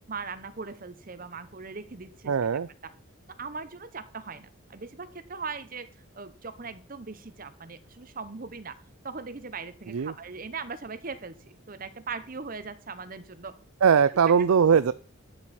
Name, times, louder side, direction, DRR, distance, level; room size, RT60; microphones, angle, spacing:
voice 1, 0.1-2.3 2.8-2.9 3.4-5.9 6.1-8.8 9.0-13.6, right 4 dB, 40° right, 12 dB, 0.8 m, -39 dB
voice 2, 2.3-2.7 9.9-10.1 13.8-14.9, right 7 dB, 85° right, 14 dB, 0.4 m, -20 dB
12.0 x 9.0 x 4.2 m, 0.38 s
head